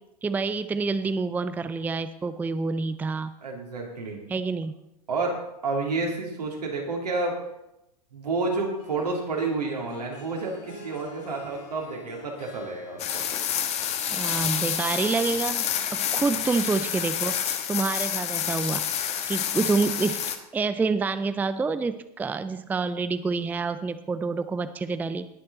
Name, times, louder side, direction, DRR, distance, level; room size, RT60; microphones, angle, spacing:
voice 1, 0.2-3.3 4.3-4.7 14.1-15.7 15.9-17.4 17.7-18.8 19.3-20.2 20.5-25.3, right 4 dB, 10° right, 12 dB, 0.5 m, -27 dB
voice 2, 3.4-4.2 5.1-5.3 5.6-7.4 8.1-13.2 16.3-16.4, right 3 dB, 80° right, 0 dB, 3.1 m, -30 dB
Harp, 8.8-14.6, left 1 dB, 55° left, 4.3 m, -47 dB
sound 1, 13.0-20.4, left 9 dB, 30° left, 1.2 m, -28 dB
19.0 x 6.7 x 4.1 m, 0.87 s
figure-of-eight pair, 90°, 20 cm